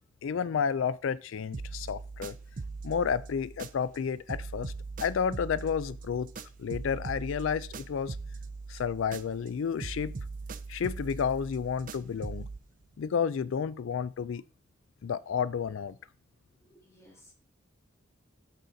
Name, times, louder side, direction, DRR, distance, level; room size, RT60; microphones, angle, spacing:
voice 1, 0.2-2.4 2.8-4.7 5.0-6.3 6.6-8.2 8.7-10.2 10.7-12.5 13.0-14.4 15.0-16.0, left 7 dB, 70° left, 0.4 m, -31 dB
sound 1, 1.5-4.0 4.3-9.5 9.8-12.6, right 3 dB, 40° right, 0.5 m, -41 dB
voice 2, 16.6-17.3, equal, 15° left, 2.0 m, -58 dB
6.7 x 6.3 x 4.0 m
head